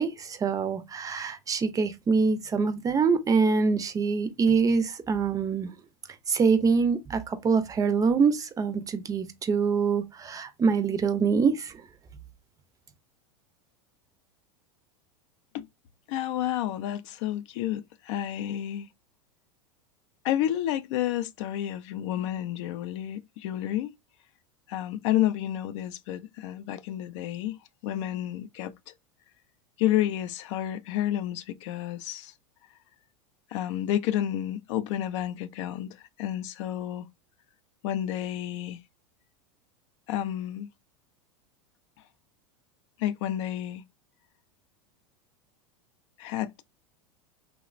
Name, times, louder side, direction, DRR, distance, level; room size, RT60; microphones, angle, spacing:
voice 1, 0.0-5.8 6.3-11.8, right 5 dB, 20° right, 0.5 m, -25 dB
voice 2, 16.1-18.9 20.2-23.9 24.7-28.9 29.8-32.3 33.5-37.1 37.8-38.8 40.1-40.7 43.0-43.8 46.2-46.6, left 12 dB, 65° left, 0.4 m, -30 dB
3.1 x 2.0 x 2.4 m
hypercardioid pair, 105°, 17 cm